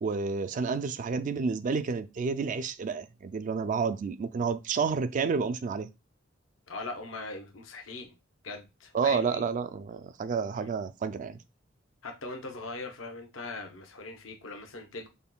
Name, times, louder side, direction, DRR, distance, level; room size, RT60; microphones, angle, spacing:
voice 1, 0.0-5.9 8.9-11.4, right 5 dB, 40° right, 0.3 m, -30 dB
voice 2, 6.7-8.1 8.4-9.5 10.5-10.7 12.0-15.1, left 3 dB, 85° left, 0.8 m, -40 dB
5.3 x 2.2 x 2.2 m
head